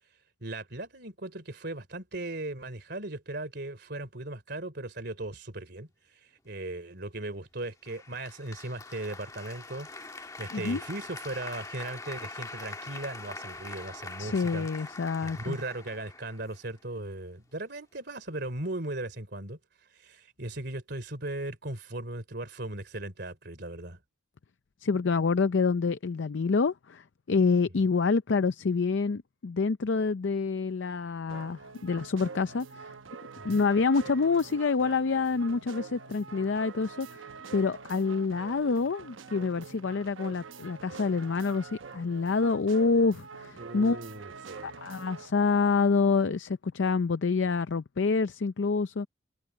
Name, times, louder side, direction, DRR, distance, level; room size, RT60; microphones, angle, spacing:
voice 1, 0.4-14.7 15.2-19.6 19.9-24.0 33.4-33.6 43.6-44.8, right 2 dB, 55° right, 3.2 m, -38 dB
Applause, 7.9-16.9, left 3 dB, 15° left, 1.6 m, -43 dB
voice 2, 14.2-15.6 24.8-32.9 33.4-37.2 37.5-44.0 44.6-49.1, left 4 dB, 65° left, 0.5 m, -27 dB
sound 1, 31.3-45.3, right 5 dB, 75° right, 0.9 m, -45 dB
head